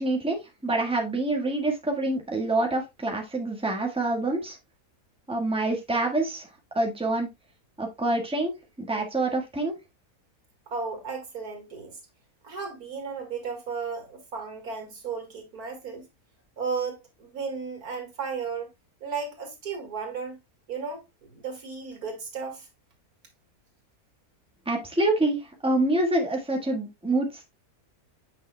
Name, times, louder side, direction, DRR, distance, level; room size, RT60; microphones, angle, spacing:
voice 1, 0.0-4.6 5.3-6.5 6.7-7.3 7.8-8.5 8.8-9.7 24.6-27.5, right 2 dB, 5° right, 1.4 m, -26 dB
voice 2, 10.7-12.0 12.4-16.1 16.6-18.7 19.0-20.4 20.7-22.7, right 5 dB, 90° right, 2.4 m, -34 dB
8.7 x 5.5 x 2.2 m
omnidirectional pair, 1.6 m